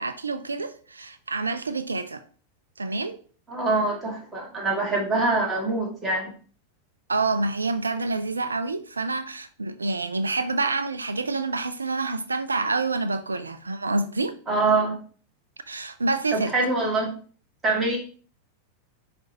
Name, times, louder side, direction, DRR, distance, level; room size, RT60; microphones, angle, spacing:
voice 1, 0.0-2.2 2.8-3.2 7.1-14.4 15.7-16.5, right 3 dB, 75° right, 0.5 m, -27 dB
voice 2, 3.5-6.3 14.5-14.9 16.3-17.1 17.6-18.0, right 3 dB, 15° right, 2.3 m, -24 dB
9.8 x 3.4 x 2.9 m
figure-of-eight pair, 90°, 0 cm